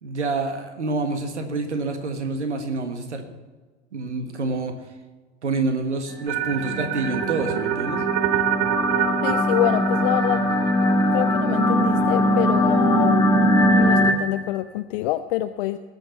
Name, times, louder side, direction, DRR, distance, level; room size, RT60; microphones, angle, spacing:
voice 1, 0.0-3.3 3.9-4.8 5.4-8.0, right 3 dB, 75° right, 6 dB, 1.6 m, -27 dB
sound 1, 6.2-14.1, left 1 dB, 10° left, 1.6 m, -21 dB
sound 2, 6.3-12.4, right 17 dB, 40° right, 0.5 m, -28 dB
voice 2, 9.2-10.4 11.1-13.3 13.8-15.8, left 15 dB, 50° left, 9 dB, 0.6 m, -26 dB
20.5 x 6.8 x 5.7 m, 1.3 s
figure-of-eight pair, 80°, 35 cm